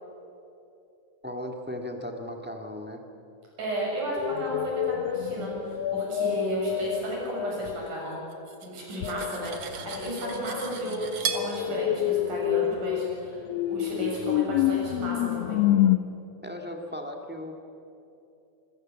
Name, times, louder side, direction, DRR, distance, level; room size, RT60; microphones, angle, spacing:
voice 1, 1.2-3.1 16.4-17.5, left 1 dB, 5° right, 3 dB, 1.0 m, -36 dB
voice 2, 3.6-8.2 8.6-13.4 13.7-15.6, right 1 dB, 75° right, -3 dB, 8.7 m, -33 dB
sound 1, 4.2-7.8 9.0-16.0, left 13 dB, 90° left, 1.4 m, -28 dB
Cutlery silverware, 8.3-11.5, right 7 dB, 55° right, 2.6 m, -36 dB
25.5 x 22.0 x 7.6 m, 2.8 s
omnidirectional pair, 3.7 m